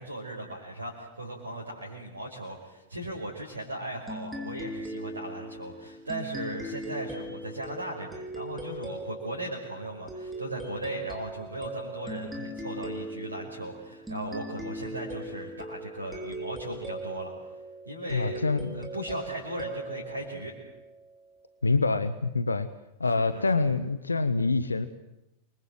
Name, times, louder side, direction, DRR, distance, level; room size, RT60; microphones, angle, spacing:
voice 1, 0.0-17.3 17.9-18.4 18.7-20.5 23.0-23.4, right 1 dB, 80° right, -3 dB, 5.5 m, -37 dB
sound 1, 4.1-21.2, right 1 dB, 10° right, 5.4 m, -40 dB
voice 2, 18.1-18.8 21.6-22.7 23.0-24.9, left 3 dB, 80° left, 13 dB, 1.3 m, -26 dB
28.5 x 24.0 x 7.8 m, 0.93 s
figure-of-eight pair, 90°, 0 cm